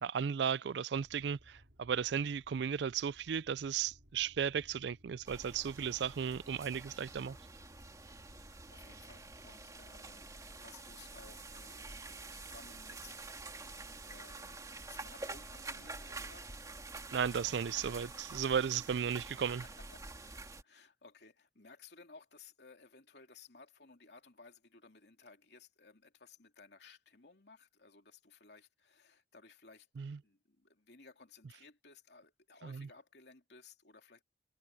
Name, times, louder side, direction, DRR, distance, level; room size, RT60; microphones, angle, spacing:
voice 1, 0.0-7.4 17.1-19.6 30.0-30.2 32.6-32.9, right 7 dB, 70° right, 0.4 m, -35 dB
sound 1, 0.9-9.5, equal, 85° right, 4.9 m, -62 dB
sound 2, 5.2-20.6, right 3 dB, 20° right, 2.6 m, -48 dB
voice 2, 8.3-13.2 14.1-16.5 19.9-29.9 30.2-34.2, left 4 dB, 65° left, 3.1 m, -59 dB
head